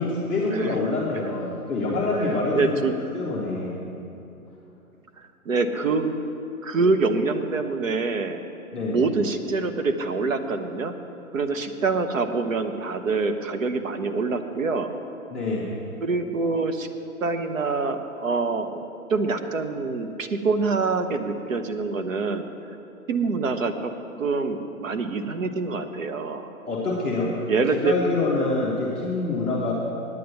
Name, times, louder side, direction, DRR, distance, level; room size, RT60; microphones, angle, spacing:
voice 1, 0.0-2.8 3.1-3.7 8.7-9.0 15.3-15.7 26.7-27.3 27.7-29.7, left 3 dB, ahead, -12 dB, 0.7 m, -26 dB
voice 2, 2.2-2.9 5.5-6.1 6.6-8.4 8.9-10.9 11.3-14.9 16.0-16.9 17.2-18.8 19.1-22.4 23.1-23.9 24.2-26.5 27.5-27.9, right 4 dB, 60° right, 7 dB, 0.9 m, -25 dB
9.3 x 7.7 x 8.1 m, 2.8 s
hypercardioid pair, 155°, 44 cm